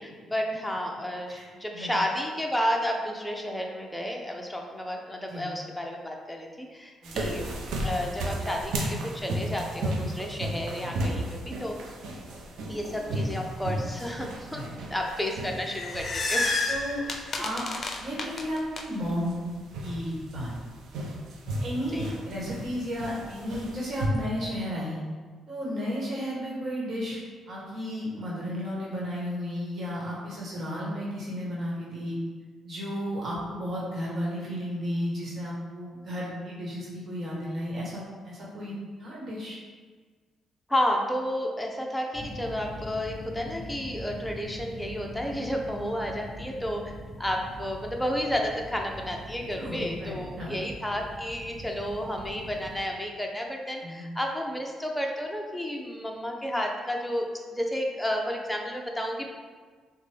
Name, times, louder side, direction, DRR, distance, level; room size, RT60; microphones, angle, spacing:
voice 1, 0.0-7.5 7.8-11.8 12.7-14.6 14.9-16.6 21.9-22.0 40.7-46.8 47.2-57.2 57.5-59.3, equal, 5° left, 1 dB, 0.7 m, -31 dB
sound 1, 7.0-24.1, right 1 dB, 75° right, 0.6 m, -35 dB
sound 2, 15.5-18.8, left 2 dB, 45° left, 0.5 m, -30 dB
voice 2, 16.7-17.0 17.4-17.6 18.0-19.5 19.8-20.5 21.6-25.0 25.5-27.2 27.5-32.2 32.6-38.7 39.0-39.6 49.5-50.6 53.8-54.0, equal, 50° right, -5 dB, 1.3 m, -33 dB
sound 3, 42.1-52.8, equal, 25° left, 1.0 m, -42 dB
6.2 x 2.2 x 3.4 m, 1.5 s
cardioid pair, 90°, 0 cm